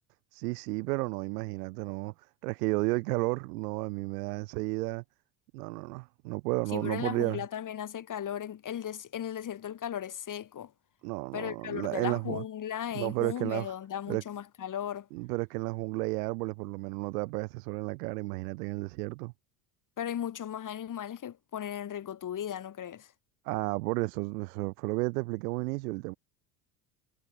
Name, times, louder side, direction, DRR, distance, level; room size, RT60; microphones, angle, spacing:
voice 1, 0.3-2.1 2.4-5.0 5.5-7.4 11.0-12.4 12.9-13.7 14.1-14.2 15.1-19.3 23.4-26.1, right 25 dB, 70° right, 1.0 m, -32 dB
voice 2, 6.7-10.7 11.3-15.1 20.0-23.1, left 10 dB, 40° left, 4.0 m, -36 dB
hypercardioid pair, 75°, 48 cm